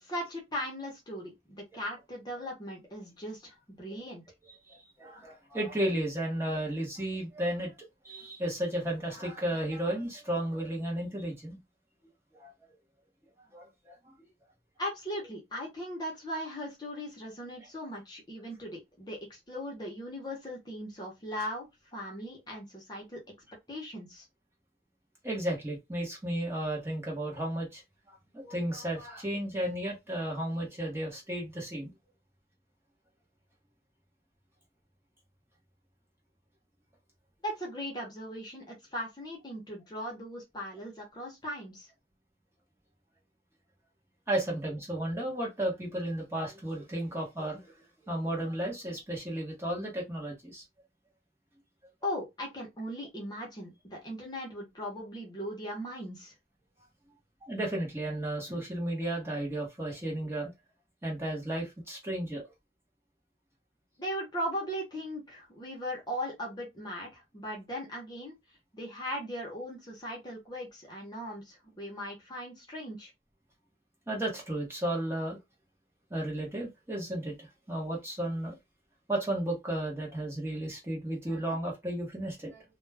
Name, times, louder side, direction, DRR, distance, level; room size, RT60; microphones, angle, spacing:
voice 1, 0.0-4.2 14.8-21.7 21.9-23.2 23.7-24.3 37.4-41.9 52.0-56.3 64.0-68.3 68.7-73.1, equal, 25° left, 0.8 m, -38 dB
voice 2, 4.7-7.7 8.0-11.6 12.4-12.5 13.5-13.9 25.2-27.8 28.3-31.9 44.3-47.7 48.1-50.6 57.5-60.5 61.0-62.4 74.1-75.4 76.1-78.6 79.1-82.6, right 1 dB, 15° right, 0.9 m, -33 dB
2.3 x 2.2 x 3.2 m
head